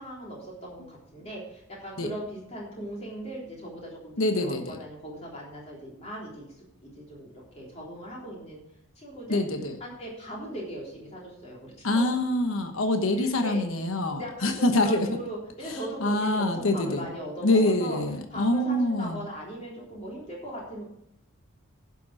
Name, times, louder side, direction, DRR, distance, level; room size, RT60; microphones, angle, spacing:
voice 1, 0.0-6.5 6.8-8.6 9.0-9.4 9.8-12.0 13.1-13.6 14.2-18.0 18.3-20.8, equal, 30° left, -3 dB, 3.6 m, -39 dB
voice 2, 4.2-4.8 9.3-9.8 11.8-15.1 15.7-17.1 17.4-19.2, left 1 dB, 75° left, 6 dB, 1.1 m, -25 dB
11.0 x 6.9 x 6.3 m, 0.76 s
head